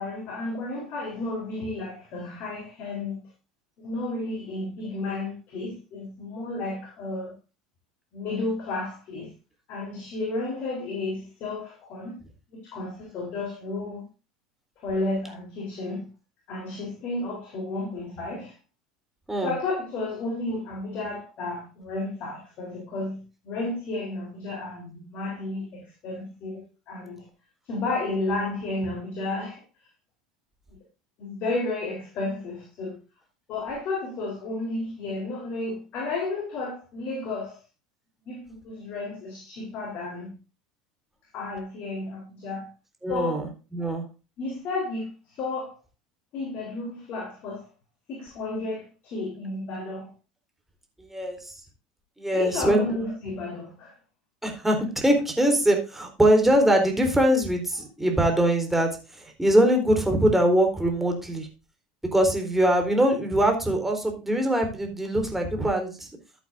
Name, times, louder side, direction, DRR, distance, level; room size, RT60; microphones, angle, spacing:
voice 1, 0.0-3.3 3.8-7.3 8.1-9.3 9.7-12.2 12.5-14.1 14.8-16.1 16.5-18.5 19.4-27.3 27.7-29.6 31.2-33.0 33.5-37.6 38.3-40.3 41.3-42.7 43.1-43.4 44.4-45.7 46.3-47.7 48.1-50.1 52.3-54.0, left 2 dB, 50° left, 3.9 m, -32 dB
voice 2, 43.0-44.0 51.0-51.6 52.2-53.1 54.4-61.5 62.1-66.1, right 1 dB, 5° right, 3.8 m, -23 dB
13.5 x 8.5 x 2.6 m
hypercardioid pair, 75°, 3 cm